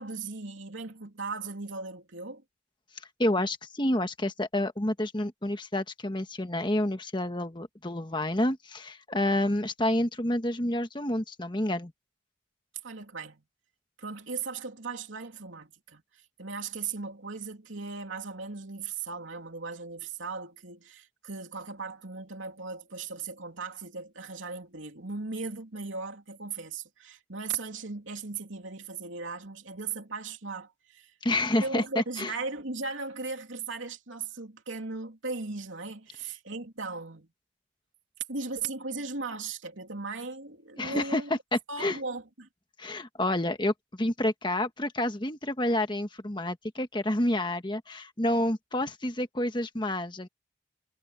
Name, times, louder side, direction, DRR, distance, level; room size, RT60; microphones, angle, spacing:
voice 1, 0.0-2.4 12.8-13.4 14.0-16.0 16.4-31.1 31.6-37.3 38.3-41.3 41.7-42.5, right 4 dB, 75° right, 3.0 m, -37 dB
voice 2, 3.2-11.9 31.2-32.3 40.8-41.2 41.5-42.0 42.8-50.3, left 1 dB, 25° left, 1.4 m, -29 dB
head